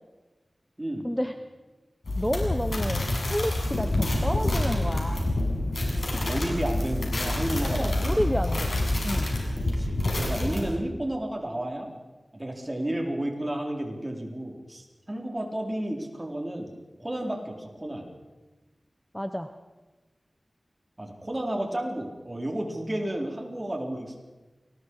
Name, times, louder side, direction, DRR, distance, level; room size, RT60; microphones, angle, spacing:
voice 1, 1.0-1.3 2.2-5.3 7.7-8.7 9.0-9.3 19.1-19.5, equal, 5° left, 7 dB, 1.1 m, -30 dB
sound 1, 2.0-10.6, left 1 dB, 75° left, 6.8 m, -27 dB
voice 2, 6.1-8.2 9.6-11.9 12.3-16.7 17.0-18.1 21.0-24.2, right 1 dB, 25° right, 1 dB, 4.5 m, -32 dB
29.5 x 21.0 x 4.9 m, 1.2 s
wide cardioid pair, 55°, 0 cm